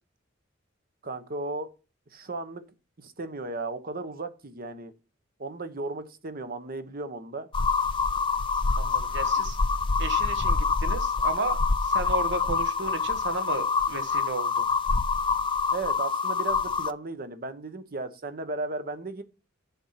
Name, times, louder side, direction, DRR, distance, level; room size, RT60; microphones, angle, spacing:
voice 1, 1.0-1.7 2.1-2.6 3.0-4.9 5.4-7.5 15.7-19.2, right 3 dB, 50° right, 1.0 m, -35 dB
sound 1, 7.5-16.9, left 4 dB, 25° left, 0.5 m, -26 dB
voice 2, 8.8-9.6 10.0-14.6, right 3 dB, 65° right, 1.3 m, -33 dB
7.2 x 7.1 x 5.7 m
head